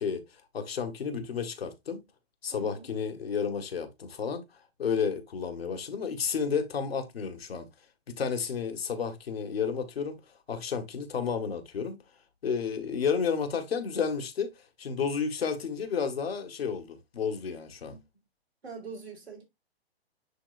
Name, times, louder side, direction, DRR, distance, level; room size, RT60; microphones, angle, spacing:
voice 1, 0.0-2.0 2.4-7.7 8.1-10.2 10.5-12.0 12.4-14.5 14.8-18.0, left 6 dB, 70° left, 1.8 m, -31 dB
voice 2, 2.5-3.0 17.9-18.2 18.6-19.4, right 5 dB, 85° right, 3.7 m, -44 dB
10.5 x 3.7 x 2.5 m
figure-of-eight pair, 120°, 31 cm